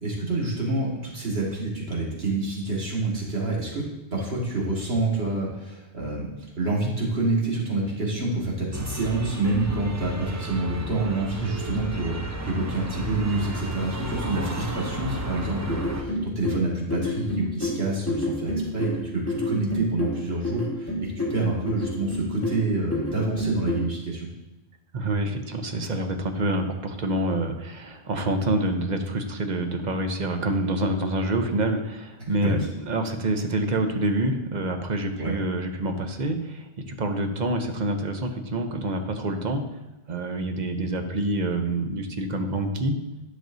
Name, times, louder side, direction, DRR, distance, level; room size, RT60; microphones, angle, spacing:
voice 1, 0.0-3.8 4.1-6.3 6.6-24.3 32.2-32.7 35.2-35.3, right 2 dB, 65° right, -4 dB, 2.0 m, -27 dB
sound 1, 8.7-16.0, right 1 dB, 30° right, 0.3 m, -33 dB
sound 2, 15.7-23.9, left 1 dB, 15° left, 1.6 m, -29 dB
voice 2, 24.9-39.6 40.1-43.0, right 2 dB, 45° right, 5 dB, 0.8 m, -27 dB
10.5 x 6.1 x 2.7 m, 1.0 s
omnidirectional pair, 1.1 m